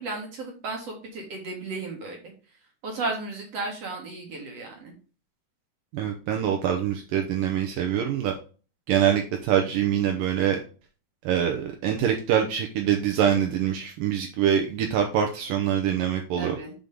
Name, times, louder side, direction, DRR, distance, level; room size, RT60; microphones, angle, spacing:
voice 1, 0.0-2.2 2.8-4.9 16.4-16.7, right 3 dB, 50° right, 0 dB, 2.3 m, -34 dB
voice 2, 5.9-8.3 8.9-10.6 11.2-16.6, right 9 dB, 75° right, 3 dB, 2.3 m, -24 dB
6.2 x 5.3 x 5.3 m, 0.37 s
omnidirectional pair, 4.2 m